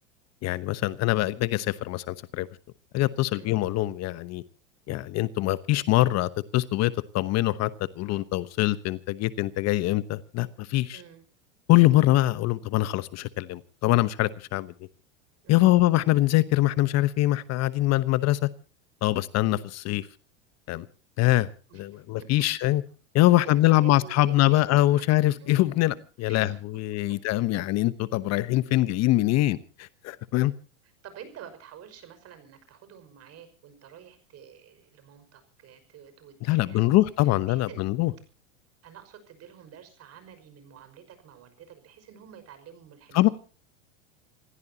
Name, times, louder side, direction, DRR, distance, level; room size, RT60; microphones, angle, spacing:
voice 1, 0.4-2.5 2.9-4.4 4.9-7.7 8.0-11.0 11.7-14.7 15.5-18.5 19.0-20.1 20.7-20.9 21.2-21.5 21.7-22.8 23.1-25.9 26.2-30.5 36.4-38.1 43.1-43.3, left 16 dB, 40° left, 1.1 m, -23 dB
voice 2, 3.3-3.7 10.9-11.2 15.4-15.8 21.7-22.5 23.4-24.6 25.0-25.5 25.8-26.0 26.2-26.6 27.1-27.2 28.7-28.8 31.0-37.9 38.8-43.3, right 9 dB, 40° right, 5.7 m, -49 dB
27.5 x 15.5 x 2.9 m
hypercardioid pair, 115°, 39 cm